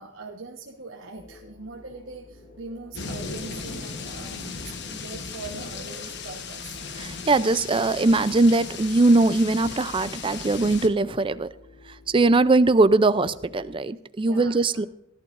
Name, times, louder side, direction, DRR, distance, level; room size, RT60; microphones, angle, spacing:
voice 1, 0.0-6.7 14.2-14.9, right 3 dB, 75° right, 0 dB, 1.2 m, -41 dB
sound 1, 1.2-13.8, left 2 dB, 35° left, 3.7 m, -49 dB
sound 2, 2.9-10.9, left 5 dB, 60° left, 1.2 m, -36 dB
voice 2, 7.0-11.5 12.1-14.9, right 2 dB, 25° right, 14 dB, 0.4 m, -21 dB
18.5 x 11.5 x 2.6 m, 0.87 s
head